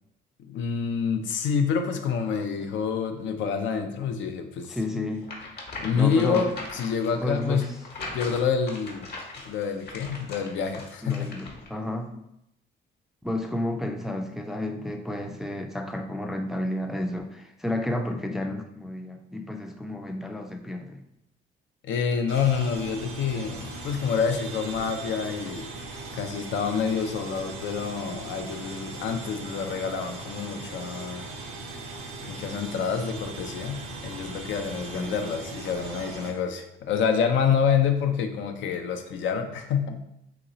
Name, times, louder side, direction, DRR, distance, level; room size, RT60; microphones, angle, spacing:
voice 1, 0.5-5.1 5.8-7.7 8.1-9.1 9.5-11.3 21.8-25.7 26.1-31.2 32.2-40.0, left 6 dB, 70° left, 6 dB, 0.5 m, -27 dB
voice 2, 4.6-5.3 5.9-6.5 7.2-7.7 11.0-12.2 13.2-21.0 34.7-35.2, left 1 dB, ahead, 4 dB, 0.3 m, -31 dB
sound 1, 5.2-11.7, left 2 dB, 55° left, 1.0 m, -40 dB
sound 2, 22.3-36.3, right 3 dB, 90° right, 0.8 m, -39 dB
3.0 x 2.9 x 3.8 m, 0.81 s
cardioid pair, 90°, 20 cm